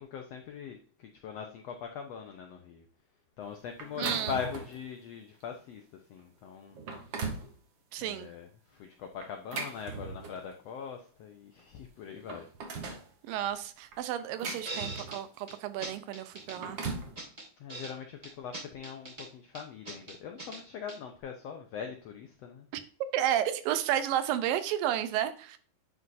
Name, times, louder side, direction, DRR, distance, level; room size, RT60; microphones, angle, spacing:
voice 1, 0.0-2.9 3.4-5.8 6.1-6.8 8.0-12.5 17.6-22.7, left 7 dB, 85° left, 1.4 m, -41 dB
sound 1, 3.8-4.8 5.4-5.6 6.2-6.3 6.7-7.5 9.2-10.5 11.6-11.7 12.0-13.1 13.9-15.3 16.3-17.1, right 4 dB, 65° right, 1.1 m, -39 dB
voice 2, 4.0-4.4 7.9-8.3 13.2-16.8 22.7-22.8 23.1-25.6, right 11 dB, 90° right, 2.4 m, -32 dB
sound 2, 14.5-15.2 15.5-15.6 15.8-16.6 16.8-17.9 18.2-19.3 19.5-20.6 20.9-21.0, right 2 dB, 20° right, 0.9 m, -41 dB
9.9 x 4.7 x 2.6 m
omnidirectional pair, 3.9 m